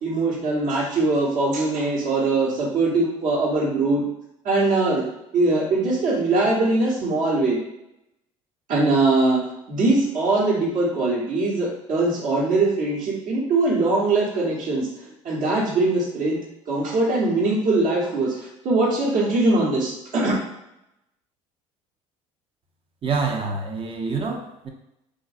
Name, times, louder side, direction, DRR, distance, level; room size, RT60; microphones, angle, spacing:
voice 1, 0.0-4.0 4.4-5.0 5.3-7.6 8.7-9.4 9.7-14.9 15.2-16.4 16.7-20.3, right 2 dB, 55° right, -4 dB, 1.3 m, -21 dB
voice 2, 23.0-24.7, right 4 dB, 35° right, 1 dB, 0.7 m, -26 dB
3.9 x 2.5 x 2.5 m, 0.84 s
figure-of-eight pair, 60°, 17 cm